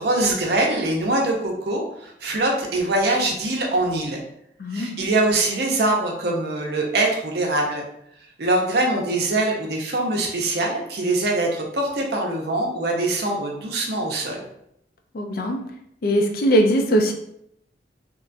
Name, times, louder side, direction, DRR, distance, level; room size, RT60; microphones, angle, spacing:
voice 1, 0.0-4.2 4.7-7.8 8.4-14.4, right 2 dB, 60° right, 0 dB, 0.6 m, -23 dB
voice 2, 4.6-5.0 15.1-15.6 16.0-17.1, equal, 55° left, 3 dB, 0.4 m, -20 dB
2.9 x 2.3 x 2.5 m, 0.75 s
head